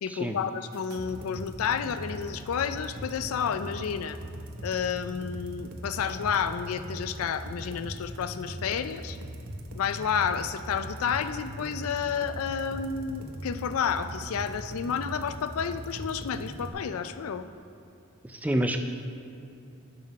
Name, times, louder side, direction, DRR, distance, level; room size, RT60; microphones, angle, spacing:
voice 1, 0.0-4.2 4.6-9.2 9.8-17.5, left 7 dB, 75° left, 11 dB, 0.4 m, -30 dB
sound 1, 0.7-16.7, right 1 dB, 75° right, 0.8 m, -40 dB
voice 2, 18.2-18.8, right 1 dB, 5° right, 6 dB, 0.3 m, -27 dB
10.5 x 3.9 x 5.3 m, 2.6 s
head